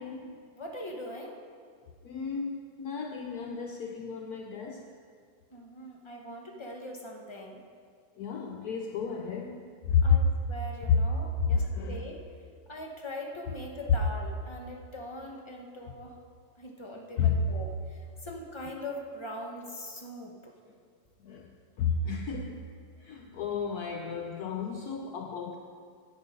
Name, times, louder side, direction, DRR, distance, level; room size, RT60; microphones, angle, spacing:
voice 1, 0.0-0.4 2.0-4.9 8.2-10.2 10.9-11.0 11.4-12.1 17.2-17.4 21.2-21.5 21.8-22.7 23.0-25.6, left 6 dB, 70° left, 3 dB, 1.0 m, -31 dB
voice 2, 0.5-1.4 5.5-7.6 10.0-12.2 12.7-16.1 16.6-20.5, left 1 dB, 20° left, 0 dB, 0.9 m, -42 dB
10.5 x 7.7 x 5.3 m, 2.1 s
omnidirectional pair, 2.0 m